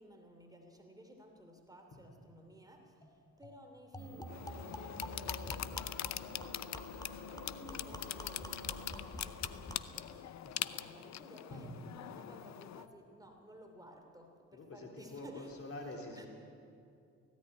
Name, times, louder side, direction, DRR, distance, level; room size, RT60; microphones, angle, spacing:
voice 1, 0.0-15.5 16.1-16.3, equal, 10° right, 3 dB, 2.9 m, -56 dB
sound 1, 3.0-3.1 3.4-3.5 3.9-10.0, left 1 dB, 10° left, 2.0 m, -47 dB
sound 2, 4.0-9.0, right 2 dB, 45° right, 3.9 m, -54 dB
sound 3, 4.3-12.9, left 12 dB, 65° left, 0.7 m, -43 dB
voice 2, 14.5-16.3, left 2 dB, 50° left, 1 dB, 3.8 m, -46 dB
18.0 x 16.0 x 9.8 m, 2.4 s
cardioid pair, 90°, 30 cm